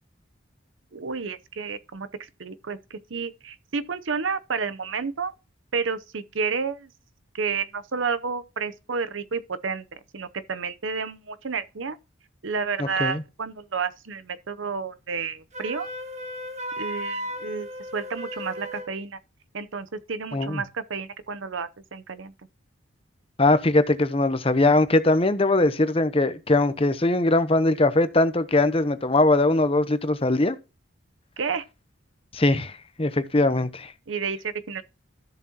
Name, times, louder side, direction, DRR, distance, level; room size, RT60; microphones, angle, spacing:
voice 1, 0.9-2.1 2.4-5.3 5.7-6.9 7.3-12.0 12.4-15.9 16.8-19.2 19.5-22.3 31.4-31.6 34.1-34.8, right 5 dB, 70° right, 0.8 m, -31 dB
voice 2, 12.8-13.2 20.3-20.6 23.4-30.6 32.3-33.9, left 2 dB, 30° left, 0.8 m, -21 dB
Wind instrument woodwind instrument, 15.5-18.9, equal, 35° right, 1.8 m, -35 dB
13.0 x 7.4 x 2.9 m
head